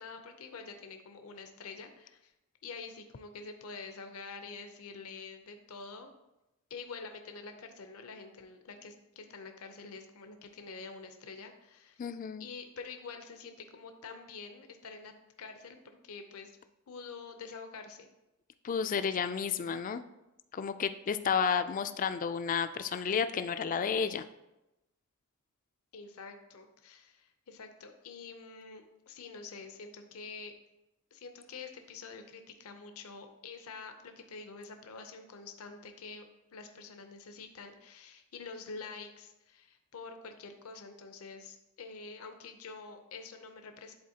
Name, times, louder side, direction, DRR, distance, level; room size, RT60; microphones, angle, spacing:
voice 1, 0.0-2.3 2.6-6.1 6.7-12.1 12.4-15.1 15.4-16.5 16.9-18.1 25.9-30.5 31.1-43.9, left 4 dB, 70° left, 6 dB, 0.6 m, -47 dB
voice 2, 12.0-12.4 18.6-20.0 20.5-24.2, left 6 dB, 35° left, 11 dB, 0.3 m, -31 dB
10.5 x 4.2 x 2.8 m, 0.94 s
head